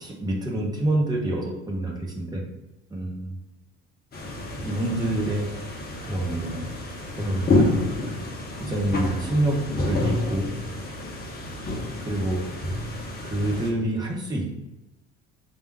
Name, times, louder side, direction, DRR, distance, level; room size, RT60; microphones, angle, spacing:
voice 1, 0.0-2.4 2.9-3.4 4.6-5.5 6.0-6.6 7.1-7.8 8.1-8.3 8.6-9.6 9.8-10.5 12.0-12.4 13.2-14.5, right 1 dB, 10° right, -2 dB, 0.9 m, -27 dB
sound 1, 4.1-13.7, left 2 dB, 25° left, 0.8 m, -29 dB
3.5 x 2.7 x 4.5 m, 0.98 s
figure-of-eight pair, 60°, 34 cm